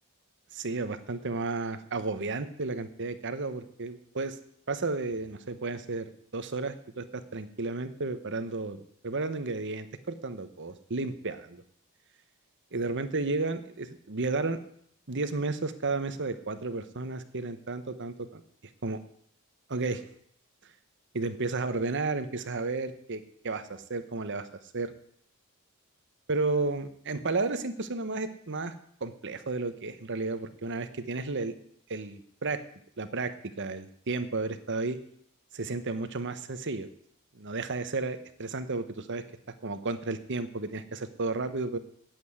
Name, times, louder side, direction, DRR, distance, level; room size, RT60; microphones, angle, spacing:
voice 1, 0.5-4.4 4.7-11.6 12.7-14.6 15.1-18.4 18.8-19.0 19.7-20.0 21.1-24.5 24.7-24.9 26.3-28.7 29.0-31.5 31.9-32.6 33.0-35.0 35.5-36.9 37.4-39.2 39.6-41.8, right 3 dB, 55° right, 10 dB, 1.1 m, -32 dB
9.3 x 8.6 x 9.5 m, 0.68 s
head